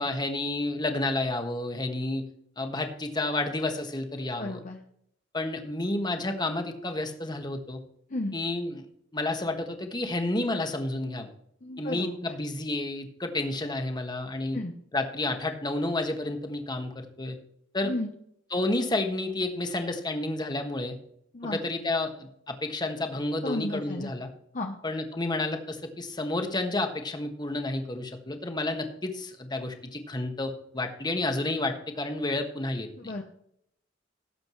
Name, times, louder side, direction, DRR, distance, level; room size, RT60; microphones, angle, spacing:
voice 1, 0.0-2.3 2.6-4.6 5.3-7.8 8.3-8.9 9.1-11.3 11.8-14.6 14.9-17.4 17.7-17.9 18.5-21.0 21.4-24.3 24.8-33.1, left 2 dB, 20° left, 5 dB, 1.4 m, -30 dB
voice 2, 4.2-4.8 8.1-8.4 11.6-12.2 14.5-14.7 17.8-18.1 21.3-21.6 23.4-24.1 24.5-24.8 33.0-33.2, left 1 dB, 40° left, 3 dB, 0.9 m, -33 dB
18.0 x 7.7 x 3.2 m, 0.71 s
head